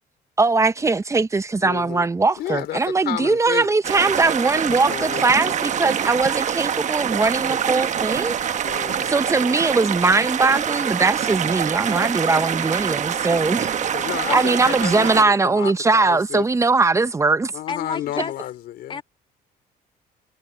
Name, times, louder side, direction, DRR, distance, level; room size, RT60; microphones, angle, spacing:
voice 1, 0.4-8.3 8.7-13.7 14.3-17.5, right 3 dB, 15° right, 0.8 m, -20 dB
voice 2, 1.6-2.1 2.4-2.8 3.1-3.7 4.9-5.5 8.6-9.1 13.3-16.4 17.5-19.0, left 13 dB, 70° left, 3.5 m, -32 dB
sound 1, 3.8-15.2, right 8 dB, 45° right, 1.2 m, -25 dB
voice 3, 17.7-18.3 18.9-19.0, left 5 dB, 30° left, 1.9 m, -28 dB
cardioid pair, 110°, 17 cm